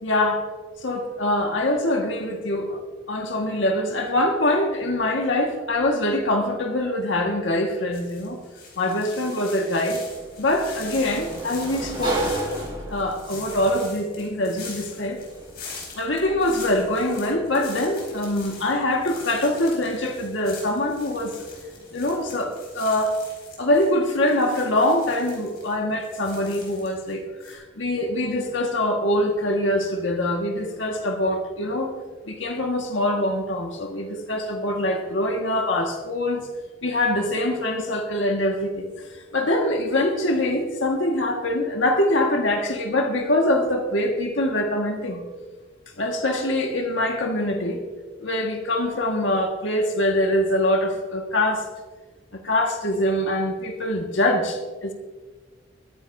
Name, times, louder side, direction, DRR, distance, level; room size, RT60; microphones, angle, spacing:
voice 1, 0.0-0.4 0.8-2.8 3.1-8.4 8.8-10.0 10.4-12.3 12.9-15.2 16.0-21.5 21.9-23.2 23.6-31.9 32.3-36.4 36.8-38.9 39.3-45.2 46.0-47.8 48.2-51.7 52.3-54.9, left 1 dB, 85° left, 2 dB, 1.7 m, -24 dB
sound 1, 7.9-27.1 27.4-27.5, left 4 dB, 55° left, 4.5 m, -43 dB
Sliding door, 9.8-22.4, right 1 dB, 25° right, 4.8 m, -37 dB
22.5 x 10.5 x 2.7 m, 1.3 s
head